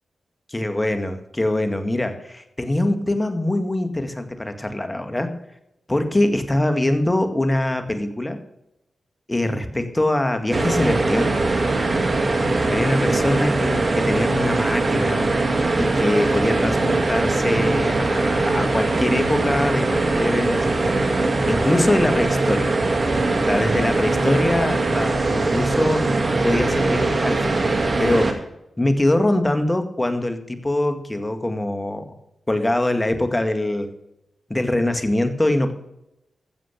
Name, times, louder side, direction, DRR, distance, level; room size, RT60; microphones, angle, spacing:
voice 1, 0.5-5.4 5.9-8.4 9.3-11.5 12.7-15.3 15.7-22.7 23.4-28.4 28.8-32.1 32.5-33.9 34.5-35.7, left 1 dB, 20° left, 8 dB, 1.9 m, -23 dB
sound 1, 10.5-28.3, right 2 dB, 45° right, 2.1 m, -21 dB
14.0 x 7.6 x 6.8 m, 0.85 s
supercardioid pair, 40°, 0 cm